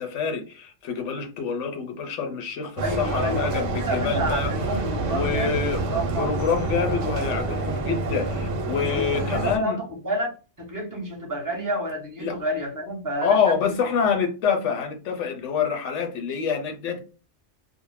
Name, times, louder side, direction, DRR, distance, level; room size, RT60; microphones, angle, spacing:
voice 1, 0.0-4.5 5.1-5.8 6.1-9.8 12.2-12.4 13.2-17.0, left 6 dB, 85° left, 0.9 m, -26 dB
voice 2, 2.8-6.3 8.9-10.3 10.6-13.7, right 1 dB, 20° right, 0.7 m, -30 dB
sound 1, 2.8-9.6, right 2 dB, 85° right, 1.0 m, -27 dB
2.6 x 2.0 x 3.1 m
omnidirectional pair, 1.2 m